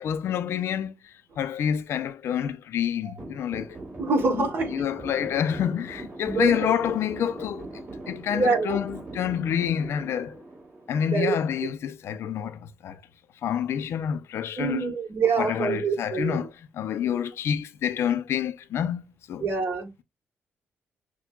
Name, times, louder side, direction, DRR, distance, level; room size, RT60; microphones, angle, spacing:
voice 1, 0.0-3.8 4.3-4.5 4.7-10.4 10.9-13.0 13.4-14.9 15.4-19.5, left 9 dB, 75° left, 0.5 m, -28 dB
sound 1, 3.2-11.5, right 2 dB, 40° right, 1.8 m, -40 dB
voice 2, 4.0-4.7 6.2-6.7 8.3-8.8 11.1-11.4 14.6-16.5 19.4-19.9, right 4 dB, 55° right, 1.3 m, -25 dB
6.0 x 2.2 x 2.3 m
cardioid pair, 105°, 4 cm